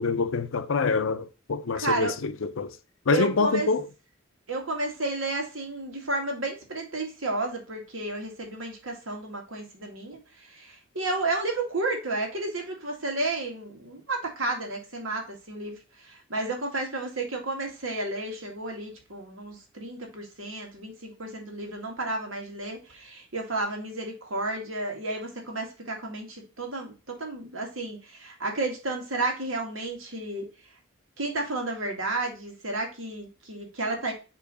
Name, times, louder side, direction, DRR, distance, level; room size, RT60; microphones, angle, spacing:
voice 1, 0.0-2.7 3.1-3.8, left 4 dB, 80° left, 0.6 m, -26 dB
voice 2, 1.7-2.2 3.1-3.7 4.5-30.5 31.2-34.1, right 2 dB, 80° right, 1.9 m, -32 dB
6.8 x 3.1 x 4.9 m
head